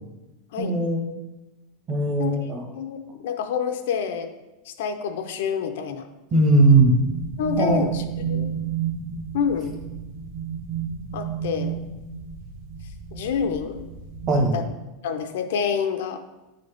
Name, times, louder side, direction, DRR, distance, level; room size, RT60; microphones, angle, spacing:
voice 1, 0.6-1.1 1.9-2.6 6.3-6.9 7.6-7.8 14.3-14.6, right 2 dB, 25° right, 2 dB, 1.0 m, -19 dB
voice 2, 2.7-4.3 4.7-6.1 7.4-8.7 9.3-9.8 11.1-11.8 13.1-13.8 14.5-14.6 15.0-16.2, left 7 dB, 65° left, 7 dB, 0.6 m, -27 dB
sound 1, 6.7-14.6, right 8 dB, 50° right, 1.6 m, -32 dB
9.2 x 3.9 x 3.5 m, 1.0 s
supercardioid pair, 175°, 0 cm